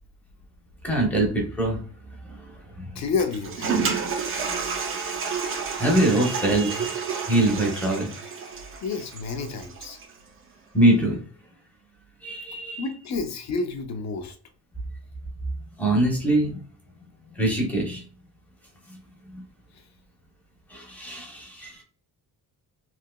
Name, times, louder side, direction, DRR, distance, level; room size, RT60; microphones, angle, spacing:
voice 1, 0.8-1.8 2.8-2.9 5.8-7.0 7.3-8.1 10.7-11.2 12.2-12.8 15.8-16.6 17.4-18.0 19.3-19.4 20.7-21.7, right 1 dB, 5° left, -1 dB, 0.7 m, -23 dB
voice 2, 3.0-3.8 8.8-10.0 12.8-14.4, left 4 dB, 45° left, 7 dB, 0.5 m, -29 dB
Toilet flush, 3.2-10.1, right 5 dB, 35° right, 0.4 m, -30 dB
3.3 x 2.7 x 2.2 m, 0.41 s
cardioid pair, 175°, 39 cm